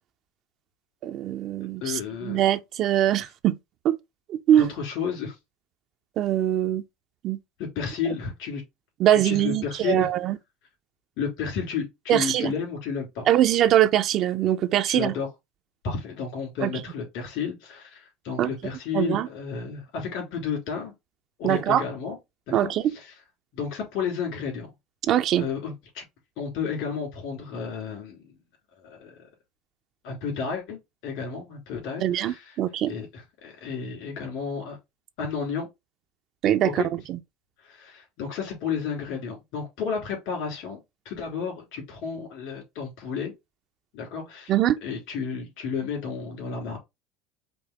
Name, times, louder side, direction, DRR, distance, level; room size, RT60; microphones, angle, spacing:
voice 1, 1.0-3.6 3.8-4.0 4.3-4.7 6.2-6.8 7.2-7.4 9.0-10.4 12.1-12.5 13.3-15.1 16.6-16.7 18.4-18.5 18.9-19.3 21.4-21.8 22.5-22.9 25.1-25.5 32.0-32.9 36.4-36.8 37.1-37.2 44.5-44.8, right 11 dB, 50° right, 0.4 m, -22 dB
voice 2, 1.8-2.5 4.6-5.4 7.6-8.6 9.1-10.1 11.2-13.3 14.9-15.3 15.8-20.9 21.4-22.2 22.5-23.1 23.5-24.7 25.4-26.0 26.4-28.3 28.8-29.2 30.0-32.6 32.9-34.8 35.2-35.7 36.6-36.9 37.6-40.8 41.0-43.3 43.9-44.5 44.8-46.8, left 6 dB, 65° left, 2.8 m, -32 dB
5.2 x 2.1 x 4.4 m
supercardioid pair, 100°, 0 cm